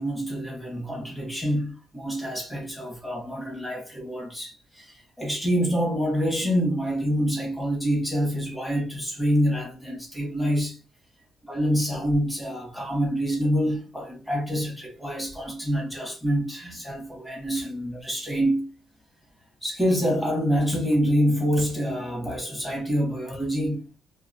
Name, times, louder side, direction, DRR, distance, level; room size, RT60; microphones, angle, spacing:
voice 1, 0.0-10.8 11.4-18.7 19.6-23.8, equal, ahead, 1.4 m, -26 dB
2.9 x 2.1 x 2.7 m
cardioid pair, 90°, 0 cm